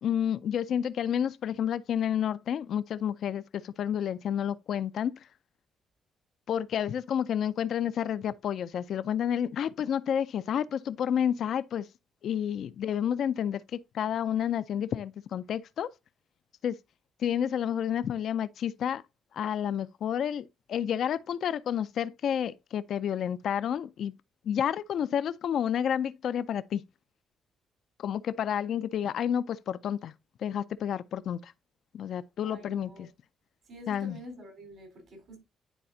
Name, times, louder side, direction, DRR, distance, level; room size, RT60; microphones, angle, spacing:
voice 1, 0.0-5.2 6.5-11.9 12.2-15.9 16.6-16.8 17.2-19.0 19.3-24.1 24.5-26.8 28.0-30.1 30.4-31.5 31.9-33.1 33.9-34.2, left 9 dB, 65° left, 0.4 m, -30 dB
voice 2, 32.4-33.1 33.7-35.4, equal, 65° right, 3.9 m, -47 dB
10.0 x 4.1 x 2.6 m
cardioid pair, 90°, 0 cm